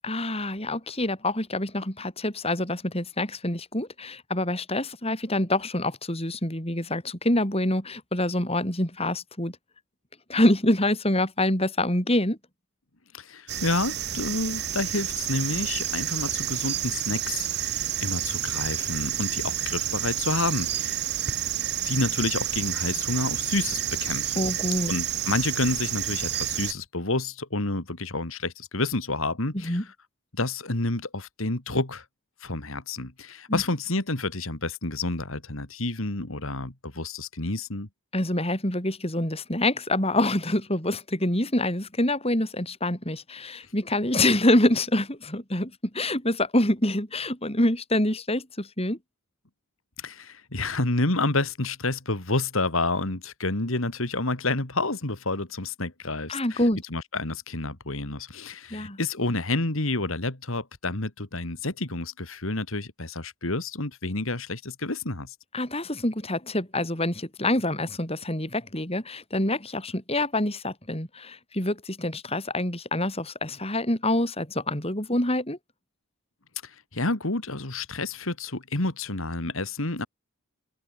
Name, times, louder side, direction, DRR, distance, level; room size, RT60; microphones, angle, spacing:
voice 1, 0.0-9.6 10.3-12.4 24.4-24.9 29.6-29.8 33.5-33.6 38.1-49.0 56.3-56.8 58.7-59.0 65.5-75.6, left 1 dB, 25° left, 5.7 m, -26 dB
voice 2, 13.1-21.0 21.9-24.5 24.9-29.8 30.3-32.0 32.4-37.9 50.0-56.6 56.9-65.3 76.6-80.1, left 2 dB, 70° left, 2.6 m, -29 dB
sound 1, 13.5-26.7, right 11 dB, 50° right, 4.3 m, -29 dB
open air
head